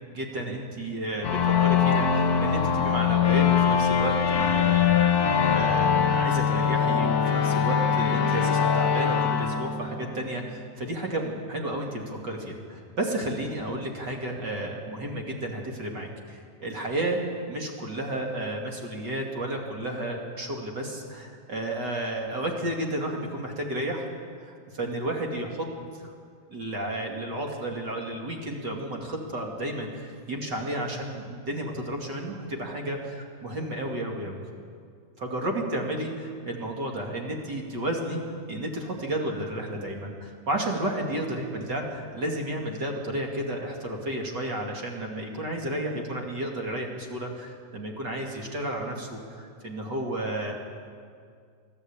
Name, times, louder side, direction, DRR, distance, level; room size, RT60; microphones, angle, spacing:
voice 1, 0.1-17.2 17.5-24.1 24.4-25.7 25.9-26.1 26.5-34.4 35.2-38.2 38.5-50.5, right 1 dB, 35° right, 1 dB, 2.8 m, -32 dB
sound 1, 1.2-10.6, left 7 dB, 60° left, 1.0 m, -23 dB
23.5 x 14.5 x 8.7 m, 2.2 s
omnidirectional pair, 3.4 m